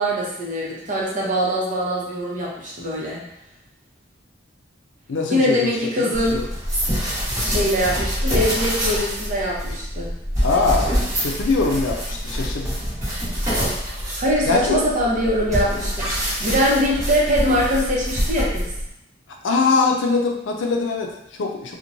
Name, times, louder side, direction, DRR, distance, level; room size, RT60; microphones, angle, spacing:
voice 1, 0.0-3.2 5.3-6.4 7.4-10.1 14.2-18.7, equal, 45° right, -4 dB, 0.7 m, -22 dB
voice 2, 5.1-5.7 6.0-6.4 10.4-12.8 14.5-14.8 19.4-21.7, left 4 dB, 75° left, 2 dB, 0.4 m, -22 dB
sound 1, 6.1-18.9, equal, 20° right, 1.0 m, -25 dB
2.9 x 2.1 x 2.5 m, 0.77 s
head